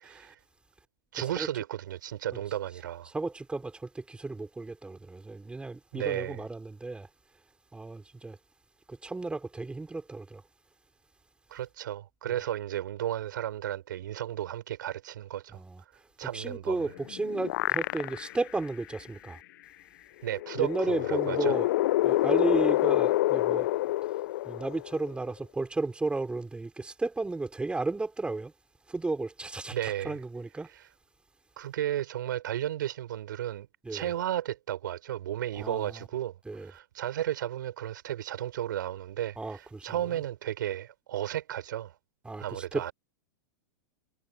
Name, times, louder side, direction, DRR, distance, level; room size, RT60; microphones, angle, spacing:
voice 1, 1.1-3.1 5.9-6.4 11.5-15.6 16.2-16.9 20.2-21.6 29.7-30.2 30.7-30.9 31.6-41.9 42.4-42.9, right 12 dB, 70° right, 5.7 m, -34 dB
voice 2, 3.1-7.1 7.7-8.4 8.9-10.4 15.5-15.8 16.3-19.4 20.6-21.7 22.0-23.7 24.5-28.5 28.9-30.7 33.8-34.1 35.6-36.0 36.5-36.7 39.4-40.0 42.3-42.4 42.7-42.8, right 3 dB, 10° right, 5.3 m, -33 dB
sound 1, 16.8-18.5 18.9-19.0 20.3-25.1, left 16 dB, 65° left, 0.5 m, -27 dB
hypercardioid pair, 105°, 11 cm